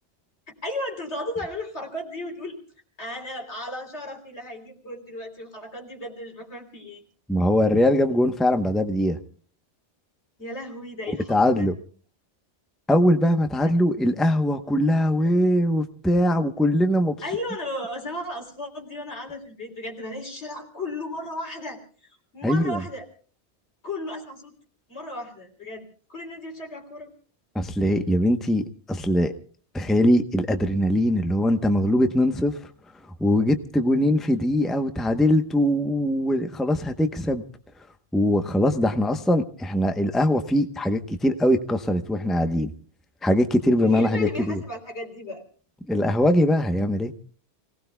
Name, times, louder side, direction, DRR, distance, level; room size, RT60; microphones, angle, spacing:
voice 1, 0.6-2.6 3.0-7.0 10.4-11.7 17.2-23.1 23.8-24.5 24.9-25.8 26.1-27.1 43.8-45.4, left 1 dB, 75° left, 2 dB, 3.8 m, -35 dB
voice 2, 7.3-9.2 11.1-11.7 12.9-17.2 22.4-22.8 27.5-28.6 28.9-29.3 29.7-32.5 33.2-37.4 38.1-42.7 43.2-44.6 45.9-47.1, left 1 dB, ahead, 7 dB, 0.8 m, -21 dB
29.5 x 18.5 x 2.3 m, 0.43 s
omnidirectional pair, 1.1 m